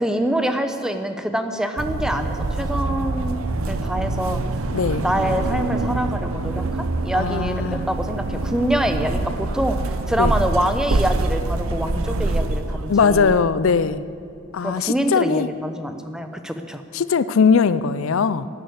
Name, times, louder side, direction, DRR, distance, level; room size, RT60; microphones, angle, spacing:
voice 1, 0.0-4.4 5.0-9.8 10.1-13.4 14.6-16.8, right 1 dB, 5° right, 7 dB, 0.8 m, -25 dB
sound 1, 1.8-13.4, right 2 dB, 80° right, 0.8 m, -25 dB
voice 2, 4.7-5.0 7.1-7.8 10.2-10.3 12.9-14.0 14.5-15.5 16.9-18.5, left 5 dB, 70° left, 15 dB, 0.5 m, -20 dB
13.0 x 11.0 x 8.2 m, 2.5 s
head